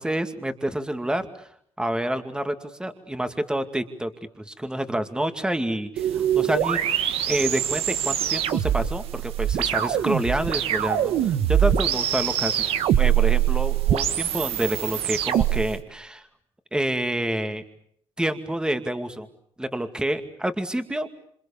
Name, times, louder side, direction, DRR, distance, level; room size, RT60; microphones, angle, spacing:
voice 1, 0.0-1.5 1.8-2.5 2.8-4.1 4.4-6.8 7.3-12.6 13.0-16.2 16.7-17.6 18.2-19.3 19.6-21.1, right 1 dB, 10° right, 8 dB, 2.3 m, -28 dB
sound 1, 6.0-15.7, right 10 dB, 85° right, 1.6 m, -23 dB
27.5 x 26.5 x 7.2 m, 0.65 s
cardioid pair, 85°, 10 cm